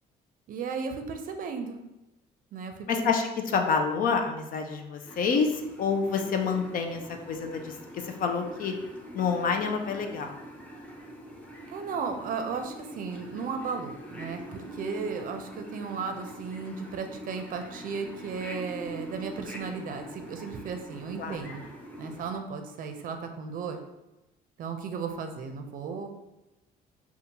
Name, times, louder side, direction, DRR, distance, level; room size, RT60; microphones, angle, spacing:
voice 1, 0.5-1.8 2.5-3.1 11.7-21.6 22.0-23.8 24.6-26.1, right 5 dB, 55° right, 6 dB, 0.5 m, -35 dB
voice 2, 2.9-7.0 7.3-8.7 9.1-10.4 21.2-21.4, left 5 dB, 55° left, 4 dB, 0.5 m, -28 dB
sound 1, 5.0-22.4, equal, 10° left, 0.7 m, -44 dB
5.2 x 2.4 x 2.8 m, 0.97 s
cardioid pair, 110°, 17 cm